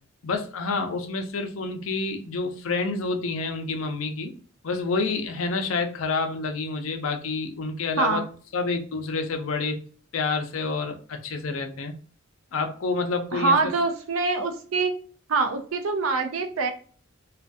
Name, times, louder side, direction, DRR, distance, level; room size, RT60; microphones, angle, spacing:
voice 1, 0.2-4.3 4.6-8.2 8.5-9.7 10.1-11.9 12.5-13.7, left 4 dB, 75° left, 5 dB, 0.5 m, -28 dB
voice 2, 13.3-14.9 15.3-16.7, right 4 dB, 80° right, 7 dB, 0.5 m, -24 dB
2.4 x 2.3 x 2.5 m, 0.42 s
head